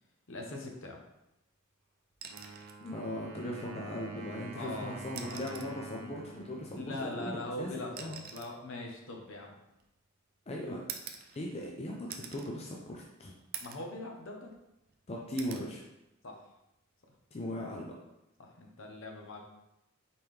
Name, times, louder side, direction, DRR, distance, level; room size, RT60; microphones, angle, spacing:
voice 1, 0.3-1.0 4.5-5.4 6.8-9.5 13.6-14.5 16.2-16.4 18.4-19.4, left 2 dB, 60° left, 1 dB, 0.8 m, -41 dB
sound 1, 2.1-2.8 4.3-4.4 5.0-5.8 7.0-10.1 10.9-11.7 12.1-12.5 13.0-13.1 13.5-13.9 14.3-15.0 15.4-15.7 17.2-17.4, right 7 dB, 45° right, 0.4 m, -46 dB
Wind instrument woodwind instrument, 2.3-7.9, right 3 dB, 85° right, 0.6 m, -48 dB
voice 2, 2.8-8.2 10.5-10.8 11.3-13.4 15.1-15.8 17.3-17.9, left 1 dB, 30° left, -1 dB, 0.5 m, -39 dB
4.2 x 3.7 x 3.2 m, 0.88 s
head